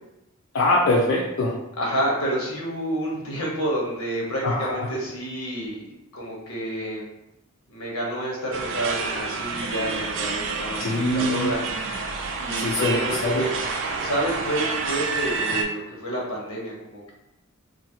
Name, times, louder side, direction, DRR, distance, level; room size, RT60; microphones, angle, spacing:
voice 1, 0.5-1.5 4.4-4.7 10.8-11.5 12.6-13.4, left 1 dB, 65° left, -4 dB, 0.4 m, -22 dB
voice 2, 1.8-7.1 7.7-11.6 12.4-13.5 14.0-17.1, right 1 dB, 90° left, -3 dB, 0.9 m, -29 dB
sound 1, 8.5-15.6, right 4 dB, 60° right, 0.4 m, -29 dB
2.7 x 2.4 x 2.8 m, 0.90 s
head